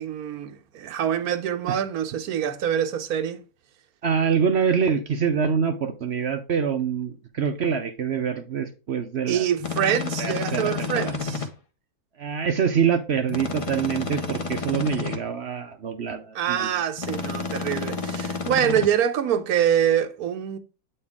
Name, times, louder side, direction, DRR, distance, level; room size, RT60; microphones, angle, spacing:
voice 1, 0.0-3.4 9.3-11.5 16.3-20.6, right 9 dB, 75° right, 1.3 m, -25 dB
voice 2, 4.0-9.4 10.2-11.1 12.2-16.7, right 6 dB, 55° right, 0.8 m, -25 dB
sound 1, 9.6-11.5 13.3-15.2 17.0-18.9, left 4 dB, 25° left, 0.8 m, -30 dB
8.6 x 4.4 x 3.5 m
omnidirectional pair, 1.6 m